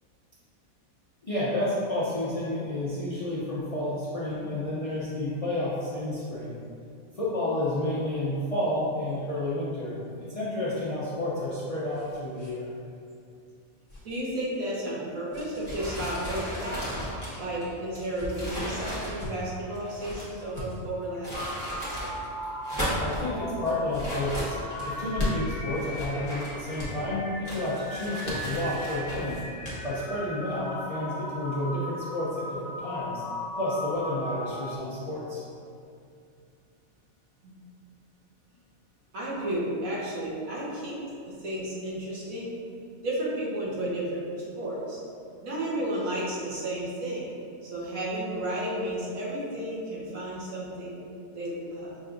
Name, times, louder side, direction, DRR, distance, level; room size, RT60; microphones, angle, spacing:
voice 1, 1.2-6.5 7.1-10.0 10.3-12.7 23.0-24.6 24.8-29.4 29.8-33.2 33.6-35.4, left 1 dB, 50° left, -8 dB, 0.4 m, -30 dB
sound 1, 11.2-12.5 12.8-13.0 13.9-14.2 15.3-15.7 16.6-17.0 17.9-18.3 19.0-19.3 20.0-20.8 22.0-22.3 22.9-23.3 23.6-23.8 24.9-25.6 26.7-27.0 28.2-28.9 29.6-30.2, left 2 dB, 30° left, 1.0 m, -38 dB
voice 2, 14.0-16.9 17.4-21.3 37.4-37.5 39.1-42.5 43.0-45.0 45.4-47.2 47.6-51.0 51.3-51.9, right 1 dB, 85° right, -6 dB, 1.5 m, -32 dB
sound 2, 15.6-20.4 21.0-22.1 22.5-23.3 23.9-25.1 25.7-27.0 27.4-29.4, equal, 15° right, 1.4 m, -36 dB
sound 3, 21.3-34.8, left 1 dB, 75° left, 1.1 m, -38 dB
6.1 x 3.4 x 2.5 m, 2.4 s
omnidirectional pair, 1.4 m